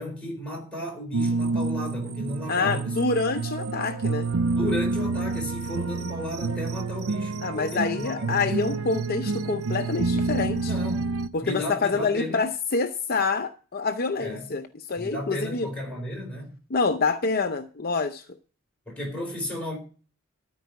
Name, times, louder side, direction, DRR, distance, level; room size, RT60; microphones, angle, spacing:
voice 1, 0.0-3.0 4.5-8.8 10.6-11.1 11.4-12.4 14.2-14.5 15.0-16.5 18.9-19.8, left 1 dB, 5° left, 4.1 m, -34 dB
sound 1, 1.1-11.3, right 3 dB, 90° right, 0.6 m, -28 dB
voice 2, 2.5-4.3 7.4-10.7 11.3-14.6 14.9-15.7 16.7-18.2, left 4 dB, 45° left, 0.6 m, -26 dB
13.0 x 4.8 x 8.3 m
head